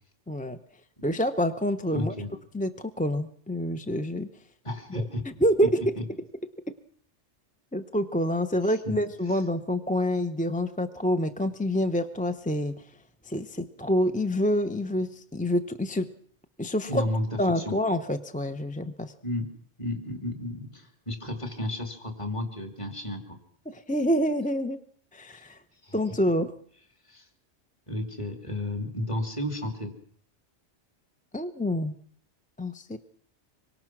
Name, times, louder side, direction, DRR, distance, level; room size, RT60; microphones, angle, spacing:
voice 1, 0.3-0.6 1.0-2.2 2.5-4.3 4.9-5.0 5.4-5.8 7.7-12.8 13.2-16.1 16.6-17.0 17.4-19.1 23.7-24.8 25.1-25.6 25.9-26.5 31.3-32.0 32.6-33.0, equal, 10° left, 8 dB, 0.8 m, -27 dB
voice 2, 1.9-2.3 4.6-5.2 6.0-6.1 8.6-9.0 9.3-9.4 16.8-17.8 19.2-19.5 19.8-23.4 25.3-25.5 25.8-26.0 27.0-27.3 27.9-29.9, left 1 dB, 25° left, 4 dB, 2.9 m, -32 dB
26.0 x 23.0 x 6.1 m, 0.62 s
omnidirectional pair, 1.2 m